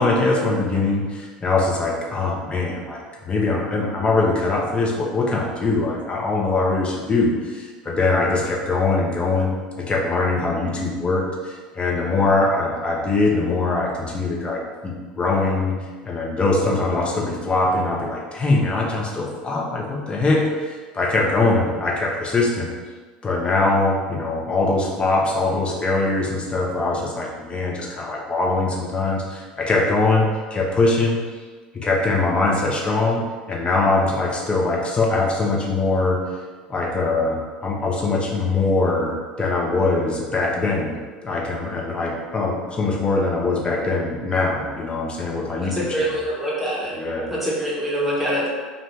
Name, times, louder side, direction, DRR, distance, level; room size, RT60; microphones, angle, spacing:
voice 1, 0.0-15.7 16.0-22.7 23.2-31.2 31.7-36.2 36.7-41.0 41.2-46.1 46.9-47.3, left 3 dB, 25° left, -2 dB, 0.7 m, -22 dB
voice 2, 45.7-47.0 47.3-48.5, equal, 5° right, -6 dB, 1.0 m, -24 dB
2.6 x 2.3 x 3.1 m, 1.5 s
hypercardioid pair, 75°, 4 cm